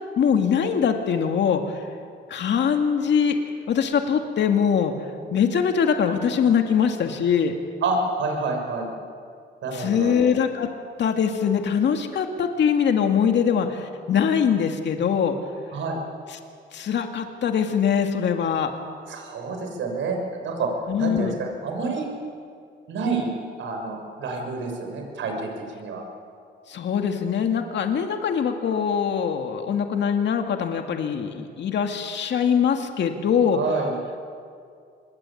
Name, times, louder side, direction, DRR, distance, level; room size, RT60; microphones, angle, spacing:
voice 1, 0.2-1.9 2.3-3.4 3.7-4.9 5.3-7.5 9.7-10.7 11.0-15.4 16.7-18.7 20.9-21.4 26.7-33.6, left 7 dB, 60° left, 4 dB, 2.3 m, -22 dB
voice 2, 7.8-8.9 9.6-10.3 15.7-16.0 19.1-20.7 20.9-22.1 22.9-23.3 23.6-25.5 25.8-26.1 33.5-33.9, right 3 dB, 75° right, 3 dB, 6.4 m, -28 dB
26.5 x 21.0 x 8.7 m, 2.3 s
cardioid pair, 90°, 20 cm